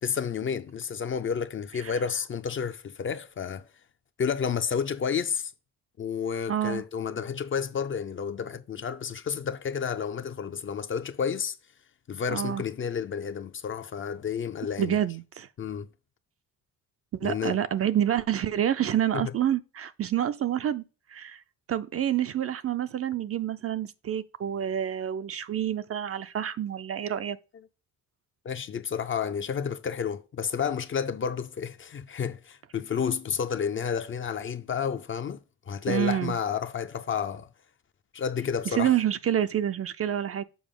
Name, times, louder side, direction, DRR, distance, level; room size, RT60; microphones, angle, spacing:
voice 1, 0.0-3.6 4.2-5.5 6.0-11.6 12.1-15.0 15.6-15.9 17.2-17.6 19.1-19.3 28.4-37.5 38.1-38.9, left 7 dB, 35° left, 0.5 m, -31 dB
voice 2, 6.5-6.8 12.3-12.6 14.8-15.5 17.1-20.8 21.1-21.4 21.7-27.4 35.9-36.4 38.7-40.4, right 10 dB, 40° right, 0.4 m, -28 dB
7.1 x 4.8 x 3.7 m
cardioid pair, 130°, 36 cm